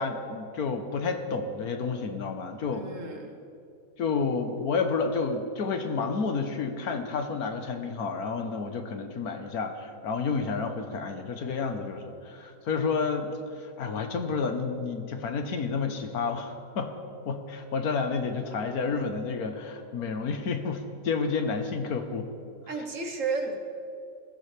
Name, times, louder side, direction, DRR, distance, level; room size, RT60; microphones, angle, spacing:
voice 1, 0.0-2.9 4.0-16.9 17.3-22.3, left 4 dB, 75° left, 6 dB, 1.5 m, -30 dB
voice 2, 2.7-3.4 22.7-23.6, right 4 dB, 55° right, 4 dB, 1.6 m, -32 dB
20.5 x 15.5 x 3.4 m, 2.5 s
omnidirectional pair, 1.6 m